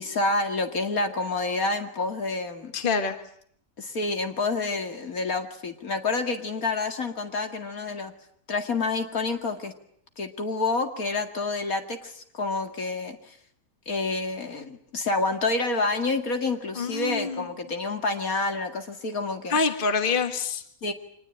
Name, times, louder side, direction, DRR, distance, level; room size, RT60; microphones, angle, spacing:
voice 1, 0.0-2.7 3.8-8.1 8.5-9.7 10.2-13.4 13.9-19.6 20.8-20.9, left 3 dB, 75° left, 5 dB, 2.7 m, -28 dB
voice 2, 2.7-3.1 16.8-17.4 19.5-20.6, left 4 dB, 35° left, 7 dB, 1.6 m, -26 dB
25.0 x 20.5 x 9.0 m, 0.67 s
omnidirectional pair, 1.5 m